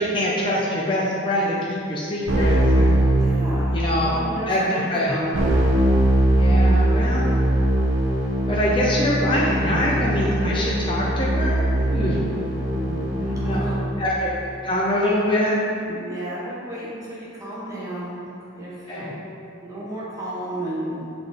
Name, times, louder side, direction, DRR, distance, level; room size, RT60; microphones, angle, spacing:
voice 1, 0.1-3.0 3.7-4.1 4.5-5.1 6.3-7.3 8.5-12.2 13.2-13.7 14.0-14.3 14.6-15.6 18.9-19.1, left 1 dB, 25° left, -5 dB, 0.6 m, -24 dB
Keyboard (musical), 2.3-4.0 5.3-13.7, right 1 dB, 80° right, 1.2 m, -21 dB
voice 2, 3.2-5.5 12.7-13.9 15.9-18.2 18.6-19.2 19.6-21.0, right 1 dB, 15° right, -7 dB, 0.9 m, -33 dB
7.6 x 3.8 x 3.4 m, 2.5 s
head